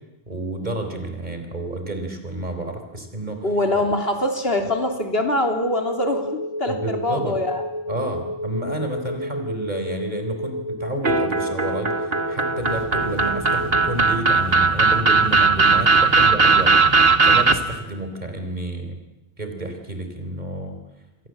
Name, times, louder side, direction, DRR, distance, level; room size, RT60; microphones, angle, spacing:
voice 1, 0.3-3.5 6.7-7.4 7.9-19.0 19.4-20.8, right 1 dB, 45° right, 5 dB, 4.1 m, -30 dB
voice 2, 3.4-6.3 6.6-7.6, left 1 dB, 70° left, 4 dB, 3.5 m, -23 dB
sound 1, 5.6-14.0, equal, 20° right, 1.9 m, -31 dB
sound 2, 11.0-17.5, right 4 dB, 65° right, 1.9 m, -18 dB
sound 3, 12.6-17.7, equal, 25° left, 6.9 m, -37 dB
28.5 x 24.0 x 7.7 m, 1.0 s
omnidirectional pair, 1.1 m